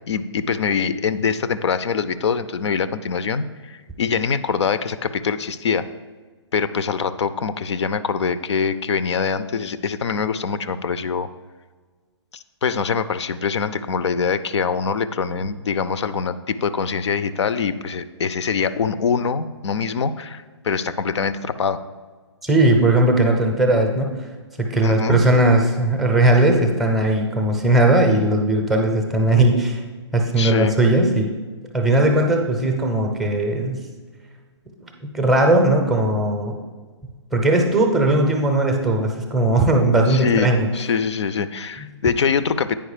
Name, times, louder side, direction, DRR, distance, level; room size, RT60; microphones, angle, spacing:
voice 1, 0.1-5.8 6.5-11.3 12.3-21.8 24.8-25.2 30.4-30.8 40.1-42.8, left 6 dB, 70° left, 14 dB, 0.5 m, -24 dB
voice 2, 22.4-24.3 24.6-29.8 30.1-31.3 31.7-33.8 34.8-36.5 37.3-40.7, right 1 dB, ahead, 2 dB, 0.6 m, -18 dB
8.9 x 4.9 x 4.9 m, 1.4 s
hypercardioid pair, 155°, 15 cm